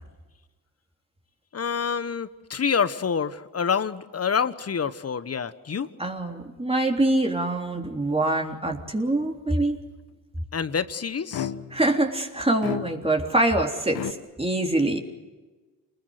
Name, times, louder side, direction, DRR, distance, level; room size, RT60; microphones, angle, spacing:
voice 1, 1.5-5.9 10.5-11.5, left 6 dB, 40° left, 14 dB, 1.3 m, -27 dB
voice 2, 6.0-9.8 11.7-15.0, right 2 dB, 15° right, 2 dB, 3.5 m, -24 dB
sound 1, 11.3-11.9 12.6-13.3 14.0-14.1, left 10 dB, 60° left, 1.3 m, -32 dB
27.0 x 21.0 x 8.1 m, 1.2 s
supercardioid pair, 65°, 40 cm